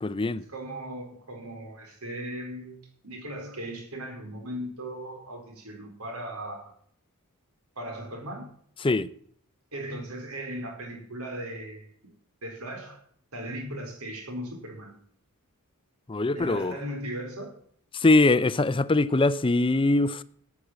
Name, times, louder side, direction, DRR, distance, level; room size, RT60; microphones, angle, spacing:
voice 1, 0.0-0.4 8.8-9.1 16.1-16.8 17.9-20.2, left 2 dB, 25° left, 0.5 m, -22 dB
voice 2, 0.5-2.8 3.0-6.7 7.8-8.5 9.7-11.9 12.4-13.0 13.3-14.9 16.3-17.5, right 1 dB, 75° right, 4.5 m, -37 dB
13.0 x 8.4 x 7.5 m
head